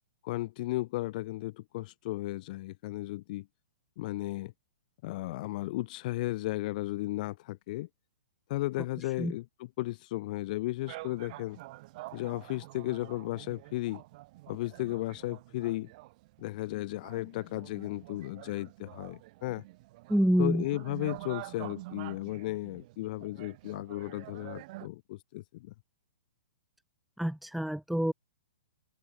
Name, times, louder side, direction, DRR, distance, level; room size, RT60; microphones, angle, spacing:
voice 1, 0.2-3.5 4.0-4.5 5.0-7.9 8.5-11.6 12.1-14.0 14.5-15.9 16.4-19.6 20.4-25.7, left 18 dB, 45° left, 1.4 m, -35 dB
sound 1, 10.9-24.9, right 20 dB, 40° right, 3.4 m, -47 dB
voice 2, 20.1-20.6 27.2-28.1, right 1 dB, ahead, 0.7 m, -27 dB
hypercardioid pair, 155°, 6 cm